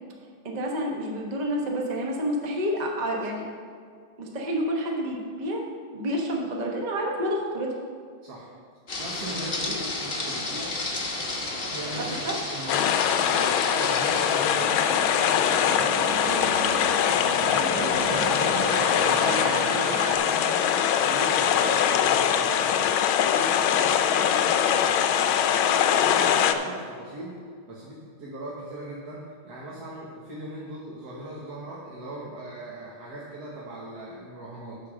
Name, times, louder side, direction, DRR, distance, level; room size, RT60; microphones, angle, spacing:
voice 1, 0.4-3.5 4.2-5.6 5.9-7.8 12.0-12.6 13.3-13.4, equal, 30° right, -1 dB, 0.8 m, -29 dB
voice 2, 8.2-8.5 9.0-10.8 11.7-16.7 17.0-20.6 21.0-25.6 25.9-27.4 27.7-34.8, right 1 dB, 55° right, -5 dB, 1.6 m, -39 dB
sound 1, 8.9-14.4, left 2 dB, 35° left, 1.0 m, -32 dB
Aircraft, 11.0-20.2, right 3 dB, 75° right, 1.8 m, -35 dB
sound 2, 12.7-26.5, left 9 dB, 75° left, 1.3 m, -22 dB
9.7 x 4.9 x 6.3 m, 2.1 s
omnidirectional pair, 2.3 m